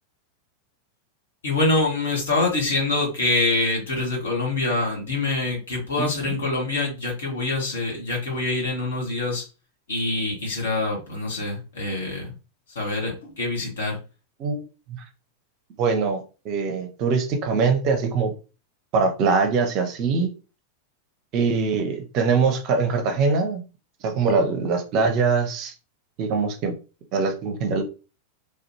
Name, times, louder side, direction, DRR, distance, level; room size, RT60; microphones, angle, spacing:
voice 1, 1.4-9.4 9.9-12.4 12.7-14.0, left 2 dB, 65° left, -1 dB, 1.4 m, -25 dB
voice 2, 6.0-6.3 14.4-14.6 14.9-15.1 15.8-18.3 18.9-20.3 21.3-23.6 24.0-25.7 26.2-26.7 27.1-27.8, right 4 dB, 40° right, 5 dB, 0.7 m, -23 dB
3.4 x 2.5 x 2.9 m, 0.32 s
figure-of-eight pair, 90°, 0 cm